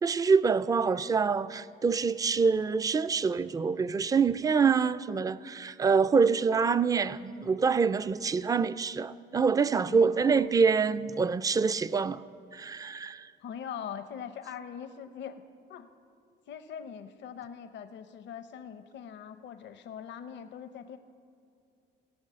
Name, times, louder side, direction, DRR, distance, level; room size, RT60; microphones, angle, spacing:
voice 1, 0.0-12.2 12.5-13.3, right 5 dB, 20° right, 0.3 m, -26 dB
voice 2, 9.9-10.5 13.4-15.4 15.7-15.9 16.5-21.0, left 8 dB, 65° left, 0.6 m, -42 dB
17.0 x 6.3 x 7.4 m
cardioid pair, 90°, 20 cm